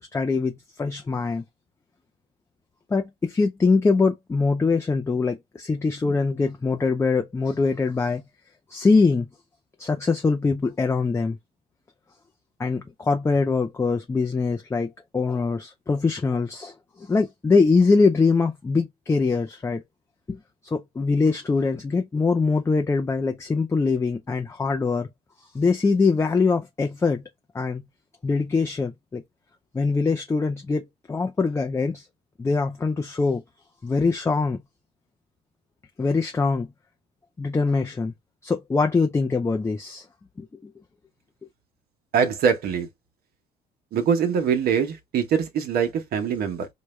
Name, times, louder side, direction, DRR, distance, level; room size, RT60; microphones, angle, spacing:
voice 1, 0.1-1.4 2.9-8.2 8.7-9.3 9.8-11.4 12.6-19.8 20.3-25.1 25.5-27.2 27.5-27.8 28.2-29.2 29.7-32.1 32.4-33.4 33.8-34.6 36.0-36.7 37.4-38.1 38.4-40.1 40.4-40.7, left 4 dB, 15° left, 0.5 m, -23 dB
voice 2, 42.1-42.9 43.9-46.7, right 7 dB, 65° right, 1.0 m, -23 dB
4.7 x 2.2 x 3.1 m
cardioid pair, 110°, 17 cm